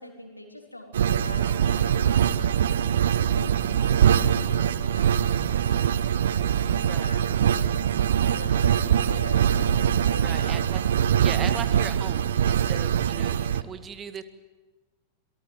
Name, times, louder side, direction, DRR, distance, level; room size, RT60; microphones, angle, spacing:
voice 1, 0.0-2.7 3.3-5.8 6.1-7.7 8.2-10.6, left 1 dB, 85° left, 3 dB, 3.9 m, -42 dB
sound 1, 0.9-13.6, right 9 dB, 65° right, 0.8 m, -23 dB
voice 2, 10.2-10.8 11.2-14.2, right 7 dB, 25° right, 11 dB, 2.0 m, -37 dB
26.5 x 19.0 x 9.1 m, 1.2 s
figure-of-eight pair, 90°, 0 cm